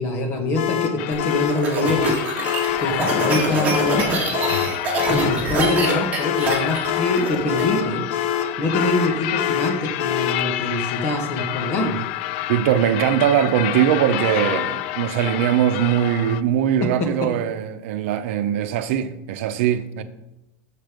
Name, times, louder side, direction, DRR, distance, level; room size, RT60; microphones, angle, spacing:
voice 1, 0.0-2.1 2.8-4.3 5.1-8.0 8.6-12.0 16.8-16.9, left 1 dB, 40° left, 1.6 m, -24 dB
sound 1, 0.5-10.5, left 10 dB, 80° left, 0.9 m, -25 dB
sound 2, 1.0-16.4, left 15 dB, 60° left, 0.3 m, -29 dB
sound 3, 1.1-7.6, right 2 dB, 20° right, 2.1 m, -25 dB
voice 2, 12.5-20.0, right 10 dB, 70° right, 0.7 m, -21 dB
6.6 x 6.5 x 5.2 m
supercardioid pair, 155°, 7 cm